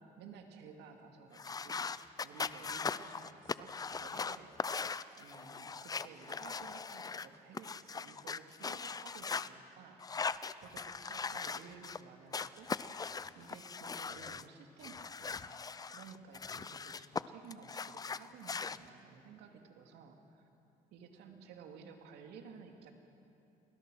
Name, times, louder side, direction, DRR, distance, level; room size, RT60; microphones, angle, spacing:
voice 1, 0.0-10.3 10.6-12.7 13.3-20.5 20.9-22.9, right 6 dB, 85° right, 4 dB, 2.4 m, -55 dB
sound 1, 1.3-9.5 10.0-12.0 12.3-14.4 14.8-17.2 17.5-18.8, left 5 dB, 20° left, 0.5 m, -40 dB
29.5 x 20.5 x 6.3 m, 2.8 s
cardioid pair, 110°, 17 cm